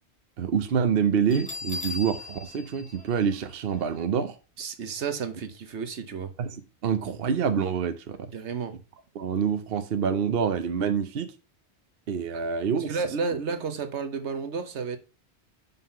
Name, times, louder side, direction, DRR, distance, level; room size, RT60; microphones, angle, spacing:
voice 1, 0.4-4.3 6.4-8.3 9.1-11.3 12.1-13.0, right 7 dB, 60° right, 0.9 m, -26 dB
Bell, 1.3-4.0, left 3 dB, 5° left, 2.3 m, -39 dB
voice 2, 4.6-6.3 8.3-8.7 12.3-12.5 12.7-15.0, right 5 dB, 80° right, 1.3 m, -32 dB
5.7 x 5.6 x 5.6 m
omnidirectional pair, 1.2 m